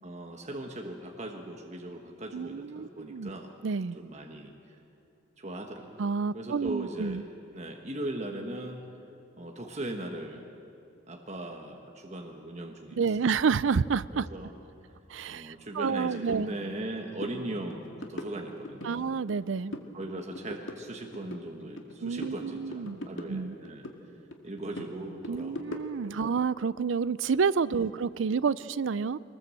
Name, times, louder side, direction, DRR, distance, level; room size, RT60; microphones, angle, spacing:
voice 1, 0.0-3.5 3.9-4.8 5.4-6.1 6.3-7.2 7.5-8.8 9.4-10.4 11.1-13.3 14.1-14.5 15.3-19.1 19.9-23.9 24.4-25.7 26.1-26.3 27.7-27.9, right 1 dB, 35° right, 2 dB, 1.3 m, -39 dB
voice 2, 2.3-3.3 3.6-4.0 6.0-7.2 13.0-14.3 15.1-16.5 18.8-19.7 22.0-23.0 23.3-23.6 25.3-29.2, right 5 dB, 80° right, 18 dB, 0.5 m, -29 dB
sound 1, 16.3-16.4 16.8-16.9 17.2-17.4 17.7-18.9 19.3-19.9 20.2-21.9 22.2-24.0 24.3-26.2, left 1 dB, 90° left, 2.0 m, -41 dB
22.5 x 20.0 x 7.7 m, 2.6 s
head